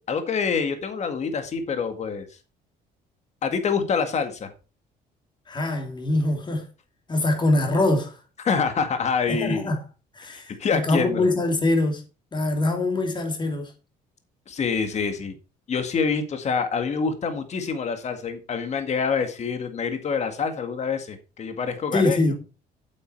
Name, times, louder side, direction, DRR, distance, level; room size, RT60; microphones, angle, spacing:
voice 1, 0.1-2.3 3.4-4.5 8.4-9.7 10.6-11.3 14.5-15.3 15.7-22.2, left 5 dB, 40° left, 1.8 m, -26 dB
voice 2, 5.5-6.7 7.1-8.2 9.3-9.8 10.1-12.0 12.3-13.7 21.9-22.3, left 2 dB, 25° left, 3.0 m, -23 dB
8.5 x 7.8 x 4.5 m
cardioid pair, 110°, 17 cm